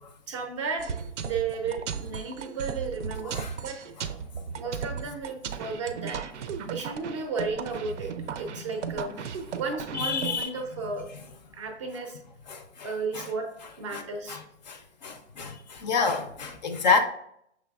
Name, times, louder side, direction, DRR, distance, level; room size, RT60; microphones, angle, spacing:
voice 1, 0.3-0.9 1.2-3.8 4.6-6.2 6.7-9.2 9.5-11.1 11.5-12.2 12.8-13.5 13.8-14.4, right 4 dB, 25° right, 0.5 m, -33 dB
sound 1, 0.8-10.4, right 7 dB, 80° right, 0.5 m, -36 dB
voice 2, 10.0-10.5 12.5-13.3 13.9-14.0 14.3-14.4 14.7-17.0, left 5 dB, 40° left, 0.4 m, -28 dB
6.0 x 3.2 x 2.3 m
hypercardioid pair, 140°, 35 cm